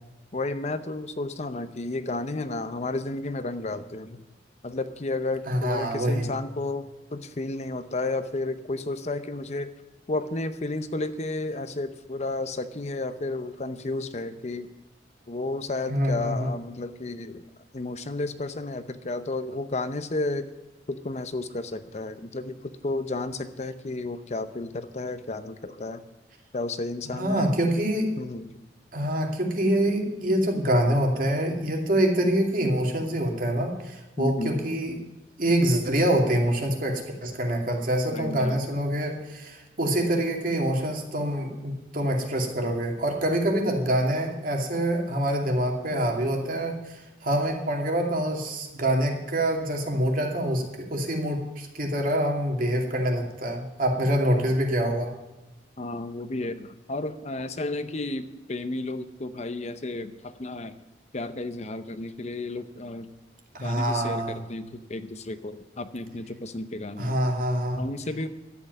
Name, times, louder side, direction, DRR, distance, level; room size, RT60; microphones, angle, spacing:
voice 1, 0.3-4.2 4.6-9.7 10.1-14.7 15.3-17.4 17.7-20.5 20.9-26.0 26.5-27.6 28.2-28.5 34.2-34.6 38.1-38.6 55.8-60.7 61.1-63.1 63.6-67.2 67.8-68.3, left 2 dB, 40° left, 11 dB, 0.7 m, -32 dB
voice 2, 5.5-6.2 15.9-16.5 27.0-28.1 28.9-34.9 35.4-55.1 63.5-64.4 67.0-67.8, right 1 dB, 50° right, 1 dB, 2.5 m, -25 dB
12.0 x 8.1 x 9.2 m, 1.0 s
head